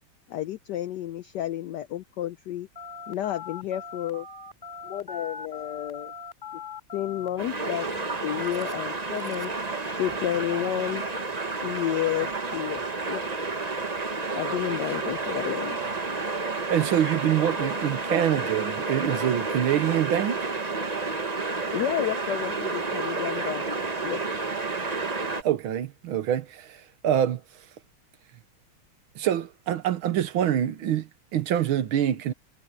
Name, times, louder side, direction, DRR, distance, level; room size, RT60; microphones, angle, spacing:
voice 1, 0.3-2.7 3.1-4.3 4.8-6.1 6.9-7.9 8.2-9.5 9.9-11.0 11.6-13.2 14.4-15.8 21.7-23.7 24.0-24.2, left 12 dB, 80° left, 0.9 m, -31 dB
Telephone, 2.8-9.6, left 5 dB, 10° left, 3.0 m, -41 dB
sound 1, 7.4-25.4, right 3 dB, 25° right, 1.1 m, -30 dB
voice 2, 16.7-20.4 25.4-26.8 27.0-27.4 29.2-32.3, right 10 dB, 70° right, 1.8 m, -25 dB
omnidirectional pair, 2.4 m